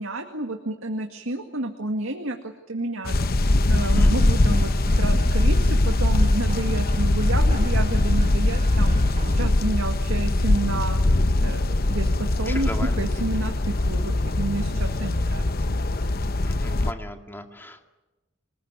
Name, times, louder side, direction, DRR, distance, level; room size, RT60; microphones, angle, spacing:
voice 1, 0.0-2.4 2.7-3.2 3.7-9.0 9.3-11.0 11.4-12.7 13.0-15.5, right 2 dB, 75° right, 4 dB, 2.0 m, -30 dB
sound 1, 3.0-16.9, left 2 dB, 45° left, 0.8 m, -21 dB
sound 2, 3.9-9.5, right 1 dB, 35° right, 1.9 m, -38 dB
voice 2, 12.3-12.9 16.4-17.9, left 1 dB, 10° left, 4 dB, 2.1 m, -37 dB
28.0 x 20.0 x 9.7 m, 1.1 s
head